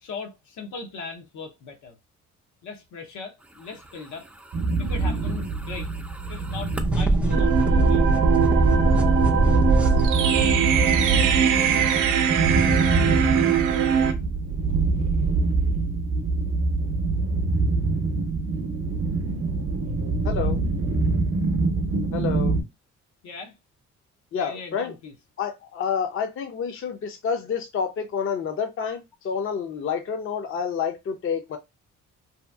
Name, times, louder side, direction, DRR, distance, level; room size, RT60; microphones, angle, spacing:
voice 1, 0.0-2.0 2.6-4.2 4.8-5.9 6.3-8.1 23.2-23.5 24.3-25.1, left 4 dB, 75° left, 0.7 m, -39 dB
sound 1, 4.5-22.6, right 3 dB, 50° right, 0.7 m, -24 dB
sound 2, 4.9-10.1, right 1 dB, 5° right, 0.4 m, -23 dB
sound 3, 7.3-14.1, right 8 dB, 90° right, 0.5 m, -22 dB
voice 2, 20.2-20.6 22.1-22.6 24.3-25.0 25.4-31.6, left 6 dB, 45° left, 0.6 m, -29 dB
2.8 x 2.4 x 2.3 m
cardioid pair, 90°, 30 cm